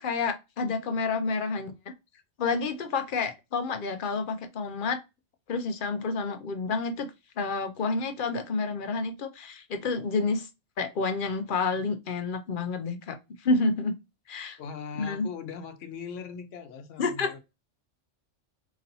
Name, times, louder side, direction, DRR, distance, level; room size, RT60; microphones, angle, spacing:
voice 1, 0.0-1.7 2.4-5.0 5.5-7.1 7.4-10.5 10.8-13.9 14.3-14.6 15.0-15.3 17.0-17.4, left 4 dB, 55° left, 0.7 m, -29 dB
voice 2, 14.6-17.4, left 6 dB, 85° left, 1.1 m, -40 dB
3.9 x 3.0 x 2.7 m
omnidirectional pair, 1.2 m